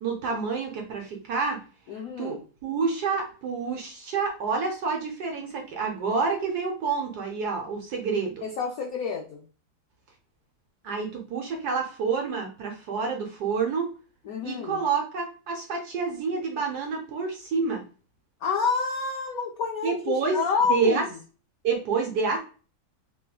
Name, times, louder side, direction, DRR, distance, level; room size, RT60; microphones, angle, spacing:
voice 1, 0.0-1.6 2.2-8.3 10.8-13.9 14.4-17.8 19.8-20.4 20.7-21.0 21.6-22.4, right 5 dB, 65° right, 2 dB, 1.1 m, -28 dB
voice 2, 1.9-2.4 8.4-9.4 14.3-14.8 18.4-21.0, left 5 dB, 90° left, 1 dB, 0.7 m, -28 dB
3.3 x 3.0 x 2.2 m, 0.37 s
omnidirectional pair, 2.2 m